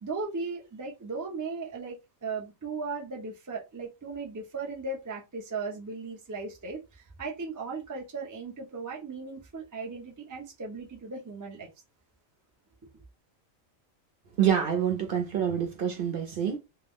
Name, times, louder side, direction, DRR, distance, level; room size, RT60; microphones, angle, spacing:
voice 1, 0.0-11.7, right 4 dB, 30° right, 0.3 m, -37 dB
voice 2, 14.4-16.6, right 9 dB, 50° right, 0.7 m, -26 dB
2.3 x 2.2 x 3.5 m
omnidirectional pair, 1.4 m